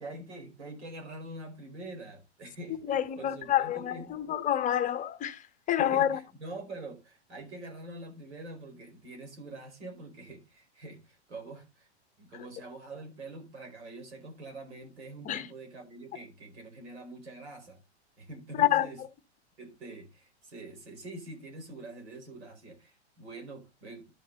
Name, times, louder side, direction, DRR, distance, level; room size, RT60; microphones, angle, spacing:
voice 1, 0.0-4.1 5.8-11.9 12.2-17.8 18.2-19.0 19.6-24.1, right 2 dB, 80° right, 4.6 m, -45 dB
voice 2, 2.9-6.2 15.2-15.5 18.6-18.9, left 11 dB, 25° left, 0.8 m, -28 dB
11.5 x 6.0 x 3.8 m
hypercardioid pair, 130°, 34 cm